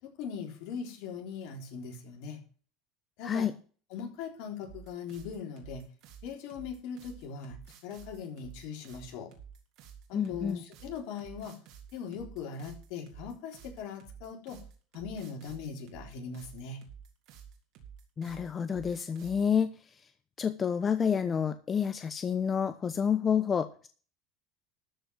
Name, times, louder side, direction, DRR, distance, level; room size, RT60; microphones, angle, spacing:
voice 1, 0.0-2.4 3.2-3.5 3.9-5.9 6.2-9.3 10.1-11.6 11.9-14.6 14.9-16.8, left 6 dB, 70° left, 3 dB, 3.7 m, -40 dB
sound 1, 4.6-19.5, right 7 dB, 65° right, 3.5 m, -51 dB
voice 2, 10.1-10.6 18.2-19.8 20.4-23.9, left 7 dB, 30° left, 10 dB, 0.9 m, -29 dB
13.5 x 5.4 x 7.6 m, 0.39 s
supercardioid pair, 100°, 0 cm